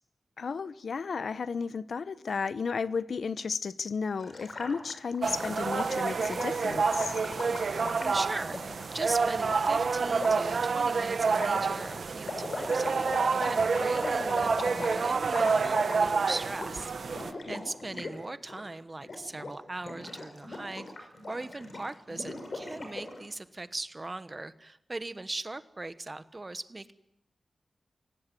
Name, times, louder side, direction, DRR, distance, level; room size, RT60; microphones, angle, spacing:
voice 1, 0.4-7.2 17.4-17.7, left 5 dB, 75° left, 0.8 m, -33 dB
Gurgling, 4.2-8.8 9.5-9.6 10.1-10.5 11.3-16.2 16.5-16.7 17.0-18.1 18.4-18.6 19.0-19.5 19.8-23.2, left 2 dB, 50° left, 5.7 m, -39 dB
sound 1, 5.2-17.3, right 5 dB, 75° right, 1.1 m, -28 dB
voice 2, 8.0-17.2 17.5-26.9, right 2 dB, 25° right, 1.2 m, -39 dB
25.0 x 17.5 x 9.2 m
wide cardioid pair, 135°, 0 cm